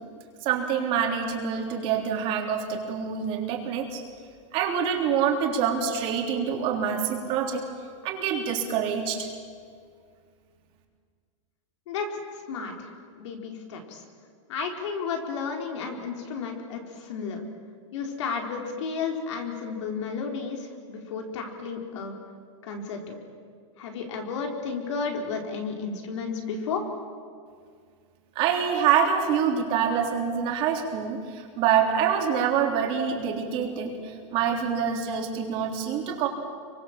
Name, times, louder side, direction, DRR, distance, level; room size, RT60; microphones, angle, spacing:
voice 1, 0.4-4.0 4.5-7.6 8.0-9.3 28.4-36.3, right 7 dB, 35° right, 1 dB, 3.6 m, -26 dB
voice 2, 11.9-12.2 12.5-14.0 14.5-17.4 17.9-22.2 22.6-23.2 23.8-26.8, left 5 dB, 65° left, 3 dB, 4.5 m, -33 dB
28.5 x 24.5 x 7.6 m, 2.1 s
supercardioid pair, 170°, 17 cm